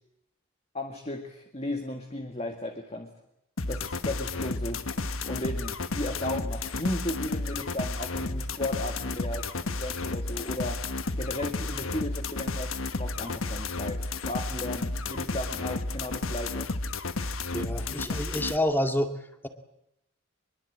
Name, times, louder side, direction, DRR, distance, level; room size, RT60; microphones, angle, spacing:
voice 1, 0.7-3.1 3.7-4.8 5.3-9.5 9.7-10.8 11.2-16.7, left 1 dB, 30° left, 4 dB, 1.9 m, -35 dB
sound 1, 3.6-18.6, left 3 dB, 85° left, 1.3 m, -32 dB
voice 2, 17.2-19.2, left 1 dB, 10° left, 6 dB, 2.0 m, -28 dB
24.0 x 22.5 x 8.7 m, 0.83 s
head